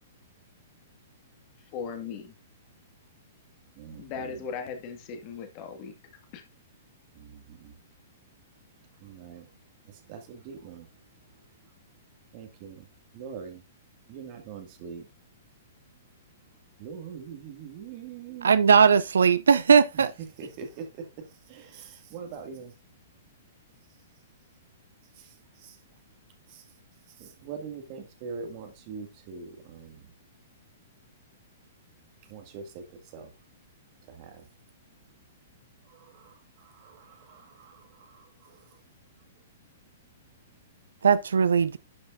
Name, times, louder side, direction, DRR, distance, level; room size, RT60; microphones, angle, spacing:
voice 1, 1.7-2.3 4.0-5.9 6.3-6.4, left 6 dB, 40° left, 1.8 m, -37 dB
voice 2, 3.8-4.4 7.1-7.7 9.0-9.5 10.1-10.9 12.3-12.9 13.1-13.6 14.1-15.0 16.8-18.6 19.9-20.0 20.4-22.7 25.2-25.3 25.6-25.8 26.5-26.6 27.2-30.0 32.3-33.3 34.1-34.5 35.9-36.3 36.6-38.6, right 6 dB, 40° right, 2.1 m, -43 dB
voice 3, 18.4-20.1 41.0-41.8, right 6 dB, 70° right, 0.4 m, -19 dB
11.5 x 5.3 x 2.6 m
figure-of-eight pair, 110°, 0 cm